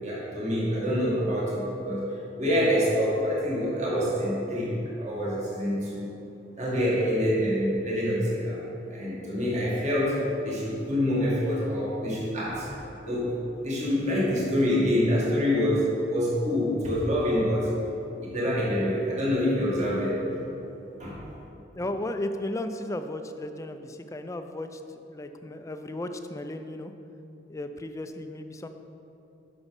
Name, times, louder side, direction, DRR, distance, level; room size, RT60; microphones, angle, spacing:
voice 1, 0.0-2.1 2.4-6.1 6.6-8.6 8.9-12.7 13.0-13.4 13.6-17.7 18.2-20.2 21.0-21.2, equal, 40° right, -6 dB, 2.1 m, -26 dB
voice 2, 21.7-24.8 25.1-26.9 27.5-28.7, left 1 dB, 15° left, 8 dB, 0.4 m, -35 dB
8.1 x 6.0 x 5.2 m, 2.9 s
head